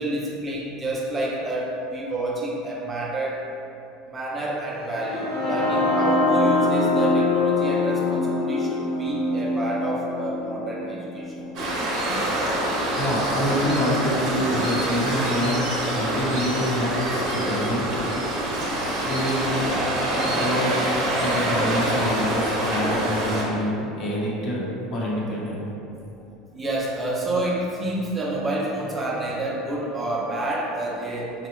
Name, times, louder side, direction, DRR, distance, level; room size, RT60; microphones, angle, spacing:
voice 1, 0.0-3.4 4.1-11.3 26.5-31.5, right 1 dB, 20° right, -4 dB, 0.4 m, -29 dB
sound 1, 4.8-12.7, left 2 dB, 80° left, 0.9 m, -24 dB
Waves surf, 11.5-23.4, right 1 dB, 50° right, 0.8 m, -25 dB
voice 2, 12.9-18.0 18.7-19.6 20.3-20.7 21.2-24.6 24.9-25.6, equal, 45° left, -4 dB, 0.7 m, -27 dB
4.2 x 2.0 x 3.0 m, 2.7 s
supercardioid pair, 140°, 0 cm